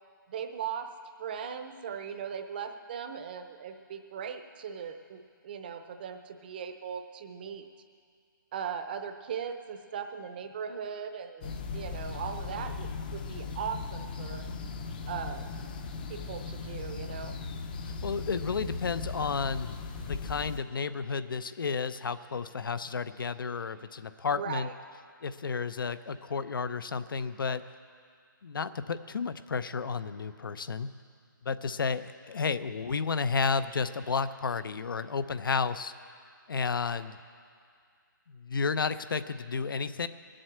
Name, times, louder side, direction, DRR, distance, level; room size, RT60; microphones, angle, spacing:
voice 1, 0.3-0.9 1.2-7.7 8.5-14.5 15.1-15.5 16.1-17.3 24.3-24.7, right 7 dB, 25° right, 7 dB, 0.6 m, -38 dB
sound 1, 11.4-20.6, left 4 dB, 25° left, 0.6 m, -38 dB
voice 2, 17.9-19.8 20.1-24.7 25.2-27.6 28.4-30.9 31.5-35.9 36.5-37.2 38.3-40.1, left 5 dB, 75° left, 13 dB, 0.7 m, -32 dB
19.0 x 7.8 x 7.8 m, 2.2 s
hypercardioid pair, 170°, 11 cm